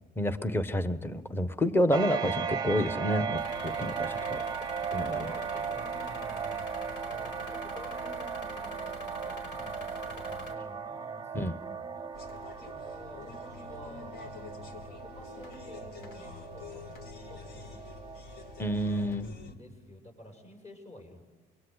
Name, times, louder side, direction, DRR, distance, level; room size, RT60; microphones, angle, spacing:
voice 1, 0.2-4.4 4.9-5.3 11.3-11.6 18.6-19.3, equal, 10° left, 12 dB, 1.2 m, -29 dB
sound 1, 1.9-19.2, right 6 dB, 20° right, 0.7 m, -37 dB
sound 2, 3.4-10.5, left 1 dB, 80° left, 5.1 m, -44 dB
voice 2, 4.9-11.4 11.7-12.3 12.6-16.8 17.2-17.8 19.3-21.2, left 1 dB, 40° left, 4 dB, 7.3 m, -51 dB
sound 3, 12.1-19.6, left 5 dB, 65° left, 2.0 m, -47 dB
26.0 x 22.5 x 8.2 m, 1.3 s
cardioid pair, 140°, 18 cm